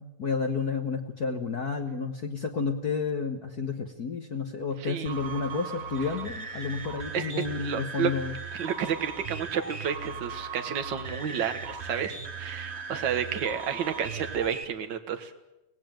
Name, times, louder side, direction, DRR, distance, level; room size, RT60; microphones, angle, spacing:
voice 1, 0.0-8.4, left 4 dB, 65° left, 4 dB, 0.9 m, -31 dB
voice 2, 4.8-5.1 7.1-7.2 7.6-8.1 8.6-15.5, right 8 dB, 45° right, 7 dB, 1.6 m, -31 dB
sound 1, 5.0-14.6, right 4 dB, 65° right, 0.6 m, -38 dB
23.5 x 17.5 x 9.2 m, 0.95 s
omnidirectional pair, 3.7 m